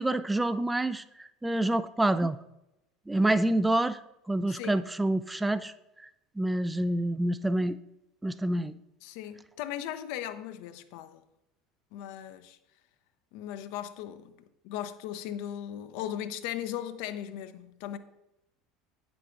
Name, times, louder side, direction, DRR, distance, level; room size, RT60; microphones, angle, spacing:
voice 1, 0.0-2.4 3.1-4.0 4.3-5.7 6.4-7.8 8.2-8.7, right 1 dB, 10° right, 0.3 m, -27 dB
voice 2, 4.5-4.8 9.0-11.2 11.9-12.6 13.3-14.3 14.6-18.0, left 11 dB, 60° left, 0.5 m, -38 dB
9.1 x 6.9 x 2.5 m
figure-of-eight pair, 70°, 0 cm